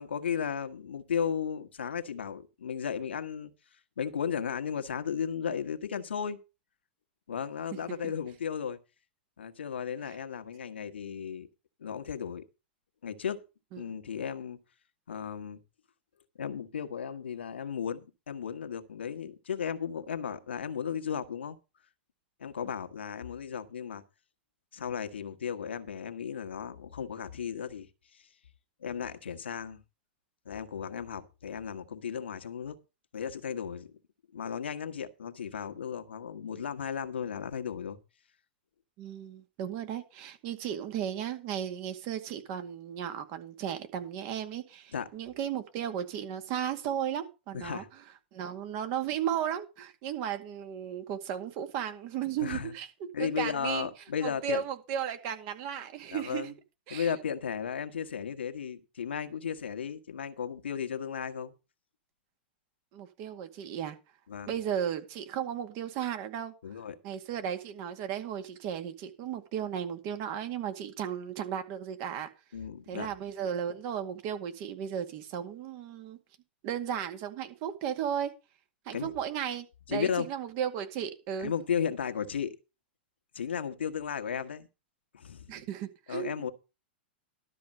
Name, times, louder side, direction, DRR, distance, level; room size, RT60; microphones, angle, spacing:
voice 1, 0.0-3.5 4.0-6.4 7.3-8.8 9.4-11.5 11.8-12.4 13.0-13.4 13.8-14.6 15.1-15.6 16.4-21.6 22.4-24.0 24.7-27.9 28.1-28.3 28.8-29.8 30.4-32.8 33.1-34.0 34.3-38.0 44.9-45.1 47.5-47.9 52.4-52.7 53.1-54.6 56.1-56.5 56.9-61.5 64.3-64.6 66.6-66.9 72.5-73.1 78.9-79.1 79.9-80.3 81.4-82.6 83.3-84.7 85.1-85.5 86.1-86.5, left 7 dB, 90° left, 1.5 m, -35 dB
voice 2, 39.0-47.8 48.3-52.9 53.2-53.9 54.2-56.5 56.9-57.1 62.9-64.0 64.5-66.5 67.0-72.3 72.9-76.2 76.6-78.3 78.9-81.5 85.5-86.5, right 9 dB, 50° right, 2.1 m, -35 dB
12.5 x 5.1 x 7.6 m
hypercardioid pair, 115°, 6 cm